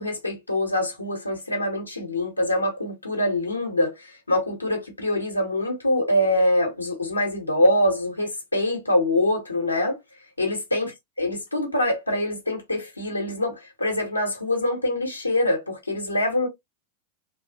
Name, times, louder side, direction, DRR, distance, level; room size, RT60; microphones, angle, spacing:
voice 1, 0.0-10.0 10.4-10.9 11.2-16.5, left 1 dB, 85° left, 1.0 m, -24 dB
2.9 x 2.4 x 2.3 m
figure-of-eight pair, 90°, 0 cm